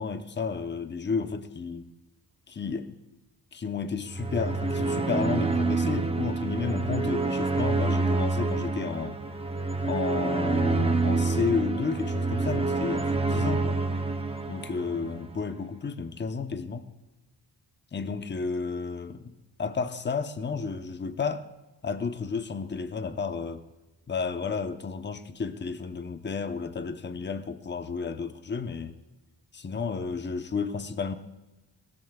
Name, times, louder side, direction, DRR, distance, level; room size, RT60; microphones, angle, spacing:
voice 1, 0.0-1.8 2.5-3.0 3.5-9.2 9.8-13.8 14.5-16.9 17.9-19.3 19.6-21.5 21.8-23.6 24.1-28.9 29.5-31.1, left 5 dB, 25° left, 0.9 m, -32 dB
sound 1, 4.1-15.4, right 3 dB, 15° right, 0.8 m, -27 dB
21.0 x 17.0 x 2.4 m
cardioid pair, 100°, 40 cm